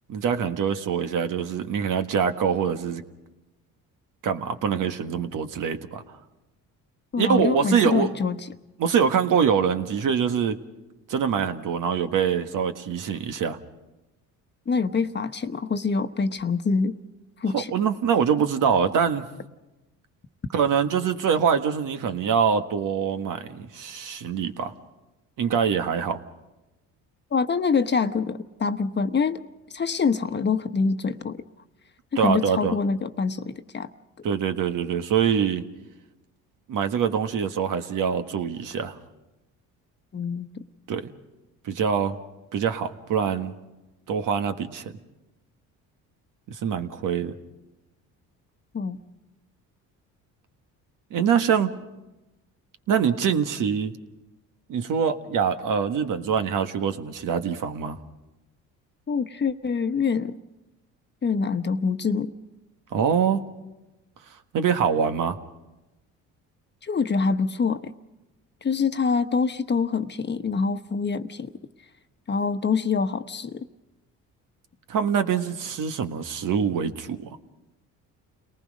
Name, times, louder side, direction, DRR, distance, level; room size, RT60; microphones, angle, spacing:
voice 1, 0.1-3.0 4.2-6.0 7.2-8.1 8.8-10.6 11.1-13.6 17.5-19.2 20.5-24.7 25.4-26.2 32.2-32.7 34.2-35.6 36.7-39.0 40.9-41.1 41.7-42.2 42.5-43.5 44.1-44.9 46.5-47.3 51.1-51.7 52.9-53.9 54.7-58.0 62.9-63.4 64.5-65.4 74.9-77.3, right 7 dB, 65° right, 7 dB, 1.7 m, -24 dB
voice 2, 7.1-8.4 14.7-17.0 17.4-17.7 27.3-29.4 29.7-31.4 32.2-33.9 40.1-40.5 48.7-49.0 59.1-60.4 61.2-62.3 66.8-67.9 68.6-71.5 72.3-73.7, left 5 dB, 30° left, 8 dB, 1.1 m, -25 dB
30.0 x 19.5 x 5.3 m, 1.0 s
cardioid pair, 85°, 34 cm